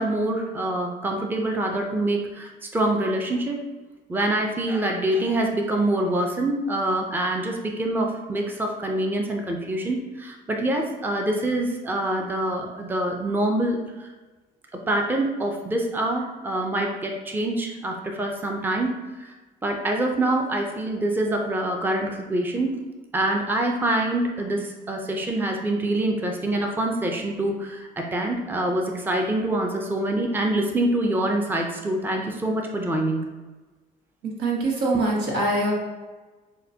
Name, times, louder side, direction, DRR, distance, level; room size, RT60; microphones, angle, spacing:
voice 1, 0.0-3.6 4.1-14.1 14.7-19.3 19.6-22.8 23.1-33.3 34.9-35.1, right 1 dB, 10° right, 2 dB, 0.5 m, -25 dB
voice 2, 34.2-35.7, right 2 dB, 85° right, -2 dB, 1.1 m, -24 dB
6.4 x 2.2 x 2.7 m, 1.2 s
cardioid pair, 110°, 17 cm